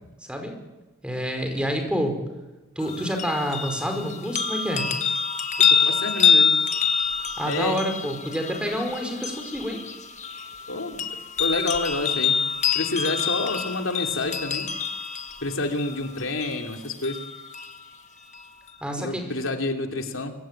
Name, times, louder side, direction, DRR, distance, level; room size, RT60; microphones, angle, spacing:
voice 1, 1.0-2.1 2.7-4.8 7.4-9.8 18.8-19.2, equal, 5° right, 5 dB, 4.9 m, -28 dB
sound 1, 2.8-17.8 18.3-18.4, left 6 dB, 35° left, 1.6 m, -26 dB
voice 2, 5.7-6.5 7.4-7.8 10.7-11.1 11.4-12.4 12.7-14.7 15.4-17.2 19.0-20.3, left 2 dB, 75° left, 4 dB, 2.8 m, -28 dB
24.0 x 24.0 x 9.0 m, 1.1 s
head